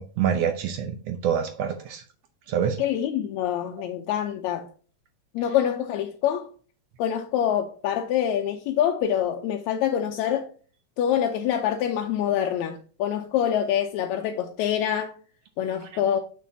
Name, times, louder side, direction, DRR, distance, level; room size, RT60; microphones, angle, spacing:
voice 1, 0.0-2.0 2.5-2.8, right 8 dB, 70° right, 1.6 m, -26 dB
voice 2, 2.8-4.7 5.3-6.5 7.0-10.5 11.0-15.1 15.6-16.2, left 10 dB, 80° left, 1.9 m, -25 dB
6.8 x 6.3 x 2.7 m
omnidirectional pair, 3.3 m